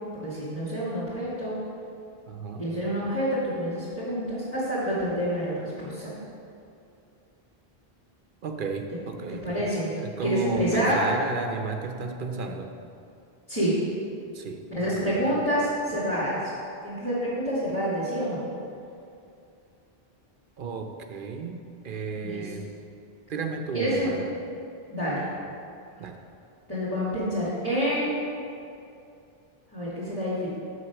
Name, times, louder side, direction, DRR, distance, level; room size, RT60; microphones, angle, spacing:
voice 1, 0.1-1.6 2.6-6.1 9.3-9.9 10.2-11.0 13.5-13.7 14.7-16.4 16.8-18.4 22.2-22.5 23.7-24.2 24.9-25.2 26.7-28.2 29.7-30.5, equal, 10° left, -11 dB, 2.1 m, -28 dB
voice 2, 2.3-2.6 8.4-9.6 10.0-12.7 14.3-15.4 20.6-21.6 21.8-22.7 23.3-24.3 26.0-26.2, right 4 dB, 60° right, 4 dB, 0.8 m, -33 dB
7.3 x 6.2 x 5.9 m, 2.6 s
omnidirectional pair, 1.0 m